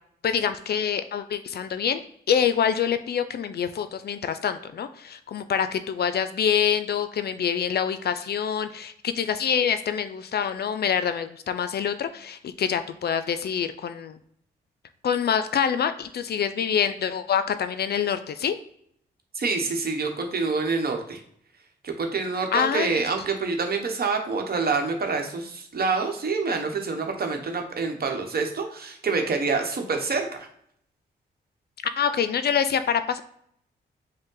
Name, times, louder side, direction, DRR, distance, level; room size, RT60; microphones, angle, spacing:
voice 1, 0.2-2.0 2.3-14.2 15.0-18.6 22.5-23.0 32.0-33.2, left 8 dB, 55° left, 10 dB, 0.4 m, -26 dB
voice 2, 19.3-21.2 21.8-30.5, right 4 dB, 50° right, 4 dB, 1.0 m, -27 dB
5.1 x 2.2 x 3.8 m, 0.69 s
supercardioid pair, 50°, 20 cm